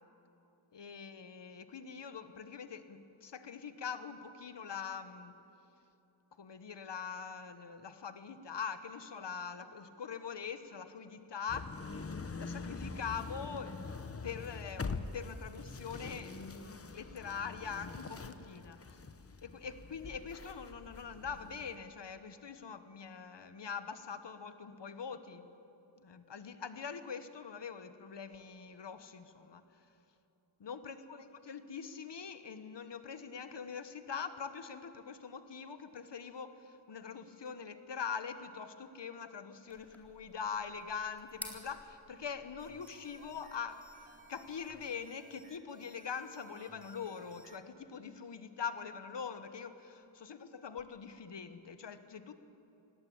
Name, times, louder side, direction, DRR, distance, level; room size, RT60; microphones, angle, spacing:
voice 1, 0.7-5.4 6.4-11.8 12.4-13.8 14.2-16.4 16.9-19.0 19.4-25.5 26.0-29.6 30.6-43.9 44.3-52.3, left 6 dB, 60° left, 10 dB, 1.2 m, -43 dB
sound 1, 11.5-21.7, left 4 dB, 30° left, 0.9 m, -44 dB
sound 2, 39.7-44.7, equal, 5° left, 3.8 m, -54 dB
sound 3, 42.6-47.6, right 2 dB, 15° right, 1.8 m, -60 dB
18.0 x 17.5 x 8.7 m, 2.9 s
wide cardioid pair, 70°, 49 cm